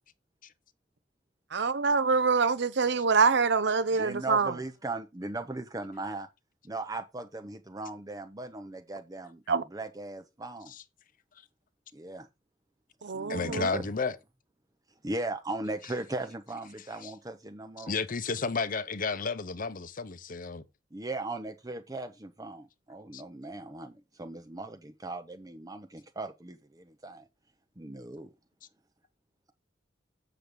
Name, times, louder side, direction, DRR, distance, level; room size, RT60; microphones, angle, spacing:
voice 1, 1.6-4.5 9.5-9.6 13.0-13.7, right 4 dB, 65° right, 0.7 m, -25 dB
voice 2, 3.9-6.3 6.6-9.4 9.7-10.7 11.9-12.3 13.1-13.8 15.0-17.9 20.9-27.2 27.8-28.3, right 2 dB, 20° right, 0.8 m, -38 dB
voice 3, 13.3-14.2 17.0-17.1 17.8-20.6 23.1-23.2, left 4 dB, 45° left, 0.8 m, -32 dB
7.7 x 6.8 x 5.0 m
head